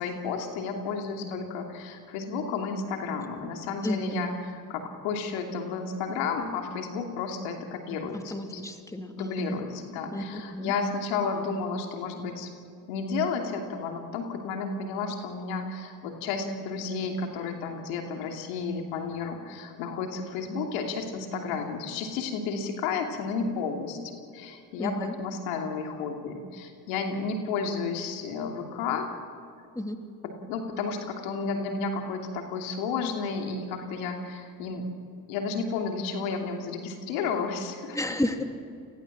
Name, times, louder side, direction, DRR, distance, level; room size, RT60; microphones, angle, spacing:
voice 1, 0.0-8.6 9.1-12.5 12.9-29.1 30.2-34.9 35.3-38.0, left 4 dB, 80° left, 3 dB, 2.9 m, -32 dB
voice 2, 3.8-4.4 8.3-9.6 10.1-10.7 24.8-25.1 29.7-30.0 37.9-38.4, left 1 dB, 5° left, 5 dB, 2.9 m, -32 dB
29.0 x 21.0 x 7.5 m, 2.4 s
hypercardioid pair, 55°, 46 cm